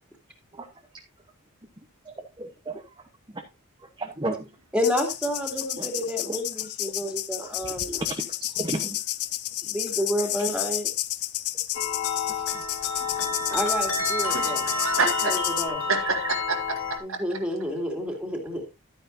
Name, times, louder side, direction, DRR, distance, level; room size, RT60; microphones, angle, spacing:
voice 1, 2.0-2.8 3.3-3.4 3.8-4.5 5.8-5.9 6.3-6.4 7.4-9.0 10.4-10.5 12.5-12.6 13.2-13.6, right 2 dB, 20° right, 3 dB, 1.0 m, -35 dB
voice 2, 4.7-8.0 9.7-10.9 13.5-14.7 15.2-15.8 17.0-18.7, equal, 5° right, 3 dB, 2.6 m, -30 dB
sound 1, 4.8-15.7, left 14 dB, 90° left, 0.7 m, -31 dB
sound 2, 11.7-17.0, left 3 dB, 65° left, 3.1 m, -29 dB
voice 3, 14.3-15.4 15.9-16.8 17.1-17.2, right 4 dB, 60° right, 4 dB, 2.1 m, -28 dB
12.5 x 9.3 x 2.7 m, 0.24 s
head